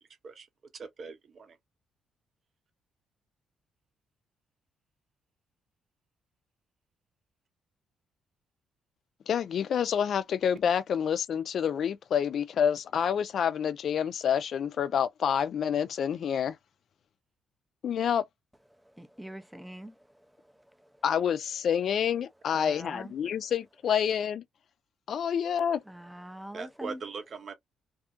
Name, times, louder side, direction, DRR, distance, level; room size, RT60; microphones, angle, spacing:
voice 1, 0.0-0.5 0.7-1.6 26.5-27.5, right 5 dB, 50° right, 0.7 m, -41 dB
voice 2, 9.3-16.6 17.8-18.3 21.0-24.4 25.1-25.8, left 8 dB, 60° left, 0.4 m, -28 dB
voice 3, 18.7-21.0 22.5-23.1 25.9-27.0, equal, 5° right, 0.4 m, -45 dB
2.6 x 2.4 x 2.4 m
cardioid pair, 90°, 0 cm